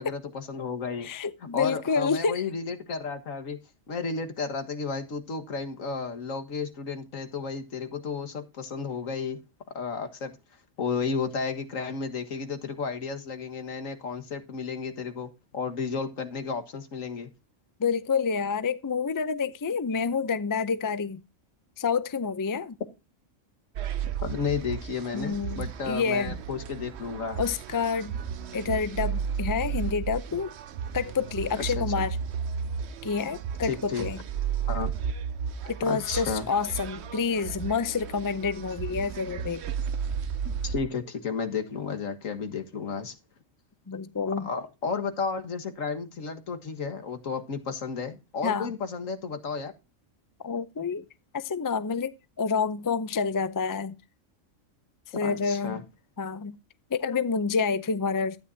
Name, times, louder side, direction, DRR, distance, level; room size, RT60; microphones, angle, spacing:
voice 1, 0.0-1.1 1.5-3.6 3.9-9.4 9.7-10.4 10.8-17.3 24.2-27.4 31.6-31.9 33.6-34.1 34.7-34.9 35.8-36.5 40.5-43.2 44.4-49.7 55.2-55.8, left 5 dB, 80° left, 1.9 m, -33 dB
voice 2, 1.0-2.4 17.8-21.2 21.8-22.8 25.1-26.4 27.4-28.1 28.5-30.5 30.9-32.2 33.0-34.2 35.7-39.6 43.9-44.5 48.4-48.7 50.4-51.1 51.3-54.0 55.2-55.8 56.2-56.6 56.9-58.4, left 5 dB, 30° left, 0.3 m, -28 dB
sound 1, 23.8-40.8, right 7 dB, 60° right, 0.9 m, -34 dB
12.5 x 10.0 x 2.7 m
omnidirectional pair, 1.4 m